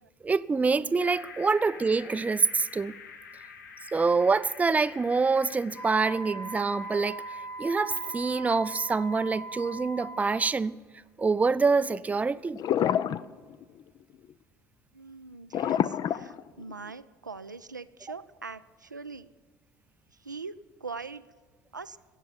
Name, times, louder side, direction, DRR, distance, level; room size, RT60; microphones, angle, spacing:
voice 1, 0.2-2.9 3.9-7.2 7.6-10.8 11.2-12.6, right 4 dB, 15° right, 0.4 m, -26 dB
sound 1, 1.0-9.2, left 6 dB, 75° left, 0.9 m, -49 dB
Wind instrument woodwind instrument, 5.7-10.5, right 2 dB, 25° left, 2.3 m, -40 dB
sound 2, 12.6-13.2 13.5-13.8 15.5-16.9, left 10 dB, 45° left, 0.5 m, -27 dB
voice 2, 14.9-19.3 20.1-21.3 21.7-22.0, right 4 dB, 90° right, 0.4 m, -42 dB
17.0 x 7.4 x 9.5 m
figure-of-eight pair, 60°, 10 cm